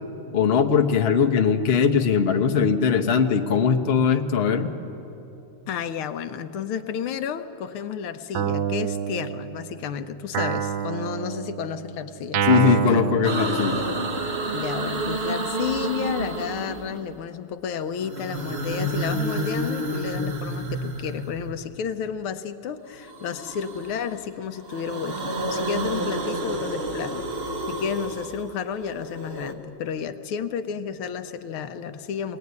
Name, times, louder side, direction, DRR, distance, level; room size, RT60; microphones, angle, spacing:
voice 1, 0.3-4.7 12.5-13.8, left 6 dB, 40° left, 4 dB, 0.9 m, -20 dB
voice 2, 5.7-12.4 12.9-13.1 14.5-32.4, left 7 dB, 75° left, 9 dB, 1.7 m, -31 dB
Guitar, 8.3-9.9 10.3-14.2, right 8 dB, 70° right, 1.5 m, -28 dB
sound 1, 13.2-17.2 17.9-21.7 23.0-24.2 24.5-29.5, right 1 dB, 35° right, 1.3 m, -30 dB
21.5 x 18.5 x 9.5 m, 2.9 s
omnidirectional pair, 2.4 m